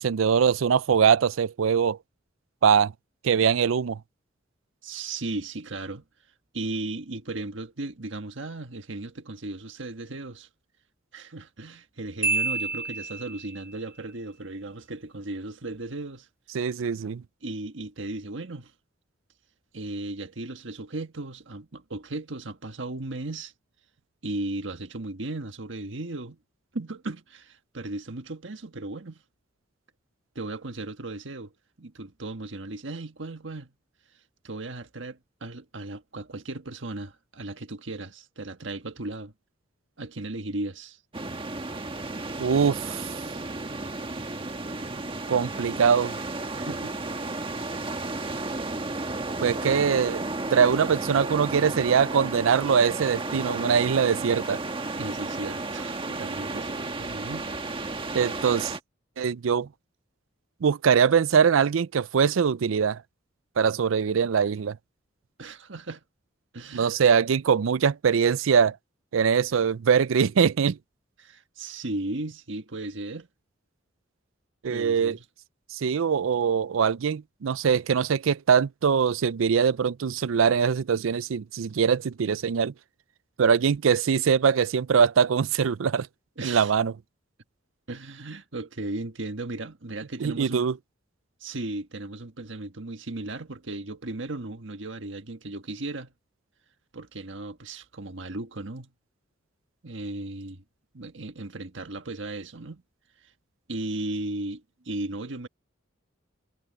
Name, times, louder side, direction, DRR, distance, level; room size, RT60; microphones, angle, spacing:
voice 1, 0.0-2.0 2.6-2.9 3.2-4.0 16.5-17.2 42.4-43.1 45.3-46.1 49.4-50.2 50.5-54.6 58.1-58.7 59.2-59.7 60.6-63.0 63.6-64.8 66.7-68.8 69.1-70.8 74.6-75.2 75.7-82.7 83.4-86.1 86.4-86.9 90.2-90.8, right 6 dB, 85° right, 0.4 m, -22 dB
voice 2, 4.8-6.0 6.5-10.5 11.1-16.3 17.4-18.7 19.7-23.5 24.2-26.4 26.7-29.2 30.3-31.5 31.8-33.7 34.4-39.3 40.0-41.0 46.5-46.9 55.0-57.5 65.4-66.0 66.5-66.9 71.2-73.3 74.7-75.2 86.4-86.7 87.9-90.7 91.4-96.1 96.9-98.9 99.8-100.6 100.9-102.8 103.7-105.5, right 2 dB, 70° right, 1.5 m, -36 dB
Marimba xylophone, 12.2-13.6, right 3 dB, 10° right, 0.4 m, -28 dB
sound 1, 41.1-58.8, right 2 dB, 25° right, 1.5 m, -33 dB
head